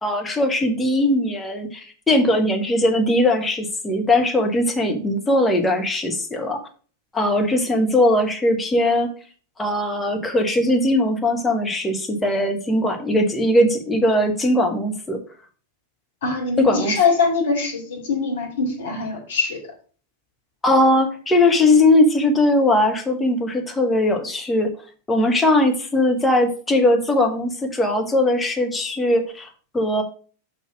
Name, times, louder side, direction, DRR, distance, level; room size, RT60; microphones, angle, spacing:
voice 1, 0.0-6.6 7.1-9.1 9.6-15.2 16.6-16.9 20.6-24.7 25.1-29.5 29.7-30.0, left 1 dB, 10° left, 1.3 m, -19 dB
voice 2, 16.2-19.6, left 4 dB, 60° left, 2.4 m, -22 dB
5.5 x 4.2 x 6.0 m
figure-of-eight pair, 90°, 0 cm